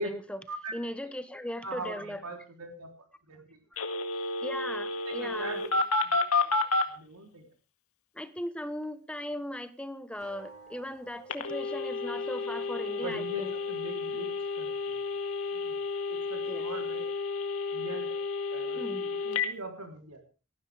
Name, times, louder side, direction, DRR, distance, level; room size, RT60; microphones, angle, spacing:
voice 1, 0.0-0.4 0.7-2.2 4.4-5.6 8.1-13.5 16.5-16.7 18.8-19.1, left 1 dB, 5° left, 12 dB, 1.0 m, -38 dB
voice 2, 1.6-2.9 3.3-3.6 5.0-6.2 6.5-7.4 13.0-15.0 15.5-15.8 16.1-17.1 17.7-18.1 18.5-20.2, right 2 dB, 85° right, 4 dB, 3.4 m, -41 dB
Telephone, 3.8-6.9 11.3-19.5, left 3 dB, 75° left, 1.9 m, -31 dB
sound 1, 10.1-17.1, right 5 dB, 35° right, 6.1 m, -54 dB
18.5 x 15.0 x 3.4 m, 0.34 s
head